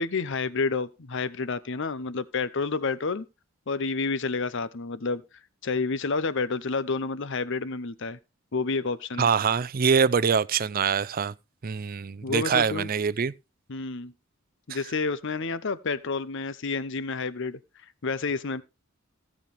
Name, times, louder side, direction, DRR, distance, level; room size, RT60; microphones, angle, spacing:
voice 1, 0.0-3.3 3.7-5.2 5.6-8.2 8.5-9.3 12.2-12.9 13.7-14.1 14.7-17.6 18.0-18.6, left 4 dB, 60° left, 0.8 m, -29 dB
voice 2, 9.2-11.3 11.6-13.3 14.7-14.8, right 6 dB, 45° right, 0.5 m, -24 dB
16.5 x 7.4 x 3.4 m
head